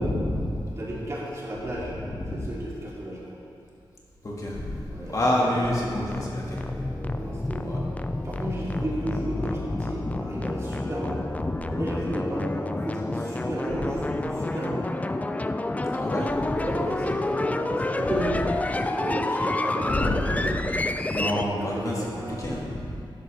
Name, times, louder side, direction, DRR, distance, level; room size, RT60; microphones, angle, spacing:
voice 1, 0.0-0.7 1.8-2.5 4.2-4.8 5.1-6.6 7.6-7.8 11.5-11.7 13.8-13.9 15.9-16.6 18.1-18.4 19.9-20.7 21.1-22.8, left 1 dB, 40° left, -4 dB, 1.9 m, -28 dB
voice 2, 0.8-1.9 2.3-3.4 4.9-5.4 6.7-7.8 8.1-11.2 11.7-14.9 16.5-20.6 21.1-22.4, right 1 dB, 35° right, -6 dB, 2.7 m, -33 dB
sound 1, 5.6-21.4, left 2 dB, 15° left, 0.4 m, -29 dB
13.0 x 10.5 x 3.4 m, 2.4 s
wide cardioid pair, 115°, 9 cm